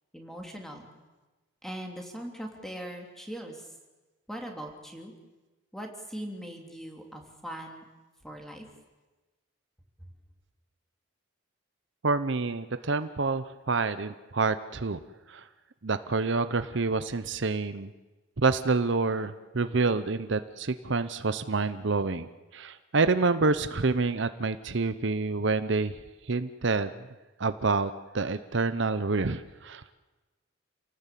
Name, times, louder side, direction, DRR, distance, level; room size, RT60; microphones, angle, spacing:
voice 1, 0.1-0.9 1.6-3.7 4.3-5.1 5.7-7.8 8.2-8.7, equal, ahead, 2 dB, 3.1 m, -40 dB
voice 2, 12.0-15.0 15.3-15.4 15.8-17.9 18.4-25.9 26.3-26.9 27.4-29.8, right 3 dB, 60° right, 12 dB, 0.8 m, -27 dB
28.5 x 18.0 x 8.4 m, 1.2 s
head